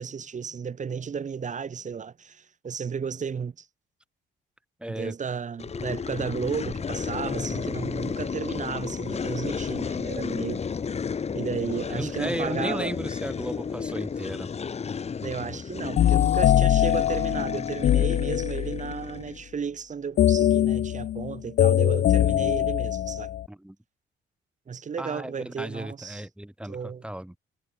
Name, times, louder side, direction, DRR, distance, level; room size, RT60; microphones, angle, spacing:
voice 1, 0.0-3.6 4.9-10.6 11.3-13.0 15.2-23.3 24.7-26.2 26.7-27.0, right 6 dB, 40° right, 1.3 m, -33 dB
voice 2, 4.8-5.1 5.7-6.0 11.9-14.5 23.5-23.8 25.0-27.3, right 1 dB, 5° right, 2.8 m, -35 dB
sound 1, 5.6-19.5, left 6 dB, 30° left, 0.9 m, -33 dB
sound 2, 16.0-18.9 20.2-23.5, left 12 dB, 55° left, 0.5 m, -22 dB
cardioid pair, 90°, 20 cm